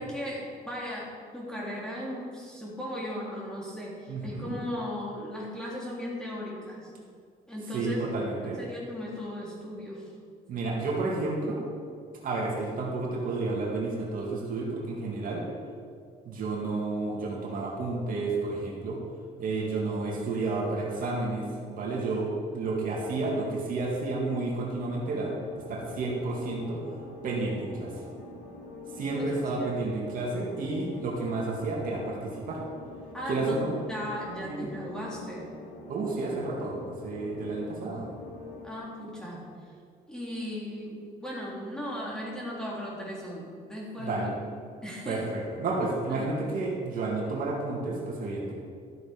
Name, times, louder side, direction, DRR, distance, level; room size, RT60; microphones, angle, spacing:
voice 1, 0.0-6.9 7.5-8.0 8.6-10.1 29.1-29.3 29.6-29.7 33.1-33.6 33.9-35.5 38.6-39.4 40.1-44.3 44.8-45.3 46.1-46.2, left 1 dB, 5° left, -5 dB, 3.5 m, -37 dB
voice 2, 4.1-4.5 7.7-8.6 10.5-11.6 12.2-15.4 16.2-19.0 19.4-26.8 27.2-27.9 29.0-32.6 33.3-33.7 34.4-34.7 35.9-36.8 37.0-38.1 44.0-44.3 45.1-48.5, right 3 dB, 55° right, -2 dB, 2.3 m, -31 dB
sound 1, 25.3-38.8, left 3 dB, 85° left, 3.4 m, -45 dB
13.0 x 8.0 x 5.2 m, 2.2 s
cardioid pair, 110°, 17 cm